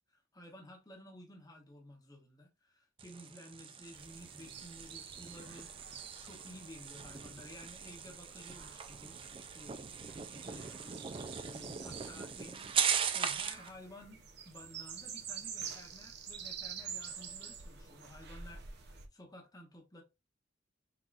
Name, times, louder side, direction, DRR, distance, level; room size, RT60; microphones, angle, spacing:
voice 1, 0.1-9.2 9.5-20.0, left 1 dB, 20° left, 1.2 m, -54 dB
sound 1, 3.0-13.7, right 7 dB, 25° right, 0.4 m, -39 dB
sound 2, 3.9-19.1, right 7 dB, 55° right, 0.7 m, -49 dB
6.0 x 2.9 x 2.5 m
head